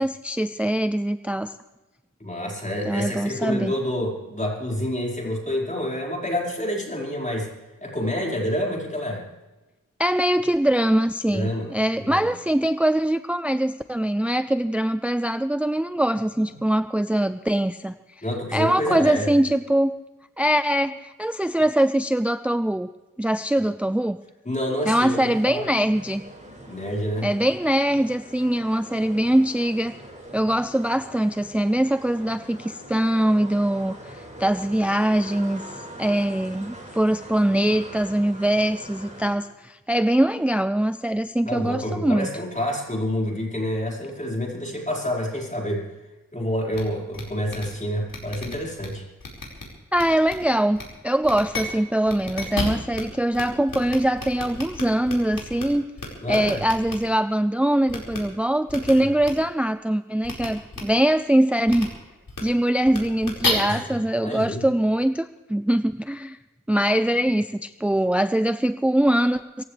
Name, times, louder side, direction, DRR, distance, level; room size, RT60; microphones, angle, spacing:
voice 1, 0.0-1.5 2.9-3.7 10.0-17.9 18.5-19.9 20.4-22.9 23.2-24.2 24.9-26.2 27.2-29.9 30.3-35.6 36.0-42.3 49.9-50.8 51.0-55.8 56.3-61.9 62.4-66.4 66.7-69.6, right 1 dB, 5° right, 11 dB, 0.5 m, -22 dB
voice 2, 2.2-7.5 7.8-9.2 11.3-11.7 12.0-12.3 18.2-19.3 24.4-25.7 26.7-27.3 41.4-45.8 46.3-49.0 56.2-56.6 63.7-63.9 64.2-64.6, equal, 20° left, -2 dB, 5.0 m, -28 dB
sound 1, 25.0-39.3, right 1 dB, 20° right, 4.7 m, -42 dB
sound 2, 46.7-46.8 47.1-47.2 47.5-47.6 48.1-48.9 49.2-49.6 49.9-50.3 50.7-50.8 51.2-51.6 52.1-53.0 53.3-53.4 53.7-55.6 56.0-56.9 57.9-58.2 58.7-58.9 59.2-59.3 60.2-60.5 60.7-60.8 61.7-61.8 62.3-62.4 62.9-63.5, left 3 dB, 75° left, 4.9 m, -31 dB
24.5 x 15.5 x 3.4 m, 1.1 s
wide cardioid pair, 90°, 33 cm